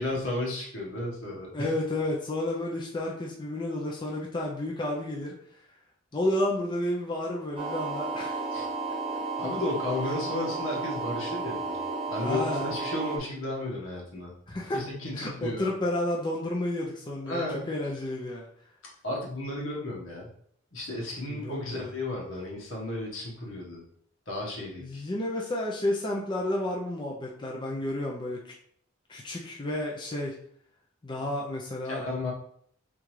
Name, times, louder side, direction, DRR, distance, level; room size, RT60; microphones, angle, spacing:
voice 1, 0.0-1.7 8.5-8.7 9.4-11.8 12.1-14.3 14.7-15.7 17.2-17.7 19.0-20.3 20.7-23.8 24.3-25.0 31.9-32.3, left 2 dB, 75° left, -2 dB, 1.3 m, -33 dB
voice 2, 1.5-5.4 6.1-8.5 12.2-12.7 14.5-14.8 15.2-18.5 21.3-21.9 24.8-28.4 29.1-30.4 31.0-32.0, left 1 dB, 25° left, -2 dB, 0.5 m, -31 dB
sound 1, 7.6-13.2, right 3 dB, 30° right, 1.0 m, -33 dB
3.7 x 3.3 x 3.1 m, 0.63 s
head